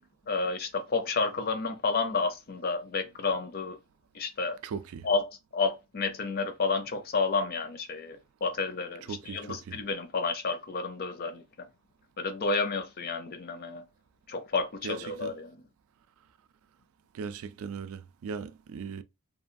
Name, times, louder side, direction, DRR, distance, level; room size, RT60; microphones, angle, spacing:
voice 1, 0.3-3.8 4.1-4.6 5.0-11.7 12.2-13.8 14.3-15.7, left 4 dB, 45° left, 0.4 m, -31 dB
voice 2, 4.6-5.1 9.1-9.8 14.8-15.3 17.1-19.0, right 5 dB, 70° right, 0.3 m, -38 dB
2.8 x 2.3 x 2.5 m
head